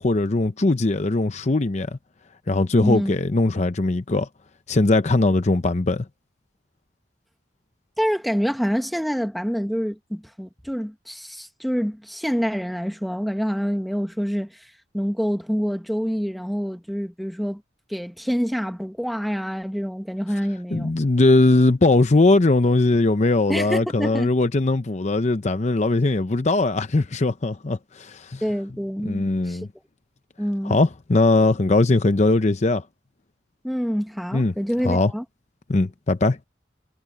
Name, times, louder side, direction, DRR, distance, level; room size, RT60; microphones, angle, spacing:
voice 1, 0.0-2.0 2.5-4.3 4.7-6.0 20.7-28.4 29.0-29.7 30.6-32.8 34.3-34.5 34.8-35.1 35.7-36.4, left 2 dB, 40° left, 0.7 m, -20 dB
voice 2, 2.8-3.1 8.0-14.5 14.9-17.6 17.9-20.9 23.5-24.3 28.4-29.6 30.4-30.8 33.6-35.2, equal, ahead, 1.4 m, -26 dB
head